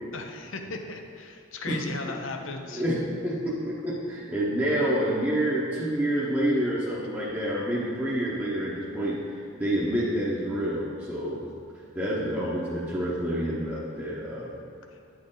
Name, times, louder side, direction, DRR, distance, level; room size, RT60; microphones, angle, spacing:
voice 1, 0.1-2.8, left 3 dB, 80° left, 5 dB, 0.7 m, -37 dB
voice 2, 2.4-3.0 3.2-11.5 11.9-14.6, right 1 dB, 10° right, -7 dB, 0.9 m, -28 dB
9.8 x 6.5 x 3.9 m, 2.5 s
head